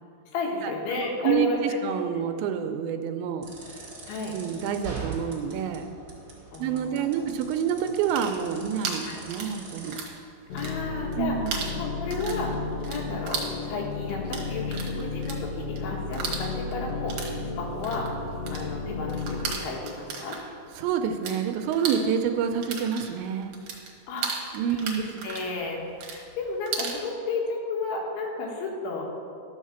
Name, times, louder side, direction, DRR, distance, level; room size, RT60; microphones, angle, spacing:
voice 1, 0.3-1.8 2.2-2.3 4.1-4.4 6.5-7.2 9.0-9.2 10.5-11.4 11.8-12.5 12.9-18.1 18.5-20.4 24.1-24.5 24.8-29.0, left 3 dB, 90° left, -1 dB, 4.1 m, -33 dB
voice 2, 1.2-3.9 4.3-5.9 6.6-10.0 11.2-11.7 20.8-23.6 24.5-25.1, right 8 dB, 85° right, 6 dB, 2.8 m, -28 dB
sound 1, 3.4-10.0, right 4 dB, 45° right, 1.0 m, -42 dB
sound 2, 7.9-10.2 10.5-11.2 11.5-21.4 21.7-27.0, right 5 dB, 60° right, 2.1 m, -36 dB
sound 3, 10.5-19.5, left 4 dB, 70° left, 2.5 m, -33 dB
12.5 x 6.4 x 7.1 m, 2.3 s
omnidirectional pair, 5.2 m